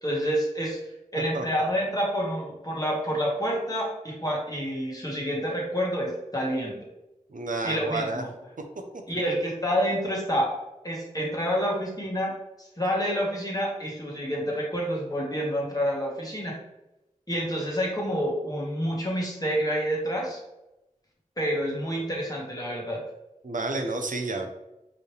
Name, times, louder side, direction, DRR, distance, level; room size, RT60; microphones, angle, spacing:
voice 1, 0.0-0.8 1.1-6.9 7.6-8.3 9.1-10.5 10.8-16.6 17.3-20.4 21.4-23.0, equal, 25° left, -3 dB, 1.6 m, -28 dB
voice 2, 7.3-8.2 23.4-24.5, right 2 dB, 75° right, 4 dB, 0.6 m, -30 dB
4.7 x 3.3 x 3.2 m, 0.94 s
wide cardioid pair, 45°, 14 cm